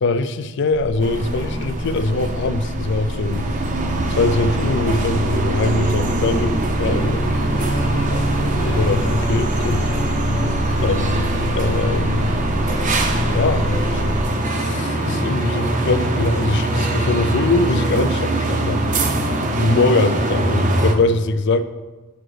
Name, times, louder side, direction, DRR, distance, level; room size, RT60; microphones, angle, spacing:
voice 1, 0.0-3.5 4.1-7.3 8.1-9.9 10.8-12.3 13.3-14.0 14.5-18.8 19.5-21.6, left 3 dB, 50° left, 11 dB, 0.4 m, -22 dB
sound 1, 0.7-14.2, equal, 25° left, 1.2 m, -26 dB
sound 2, 1.0-20.9, right 2 dB, 35° right, 0.6 m, -23 dB
sound 3, 6.8-18.0, equal, 65° left, 1.2 m, -29 dB
9.4 x 5.0 x 3.3 m, 1.2 s
head